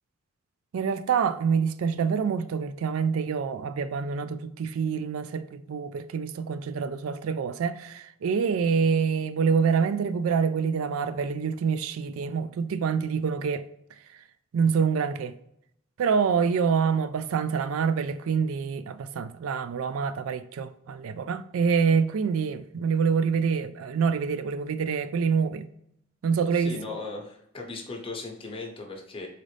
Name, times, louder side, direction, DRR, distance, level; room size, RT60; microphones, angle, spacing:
voice 1, 0.7-13.7 14.5-15.3 16.0-25.7 26.2-26.8, right 6 dB, 85° right, 0.4 m, -26 dB
voice 2, 26.5-29.3, left 3 dB, 25° left, 1.0 m, -37 dB
4.1 x 3.8 x 3.2 m
head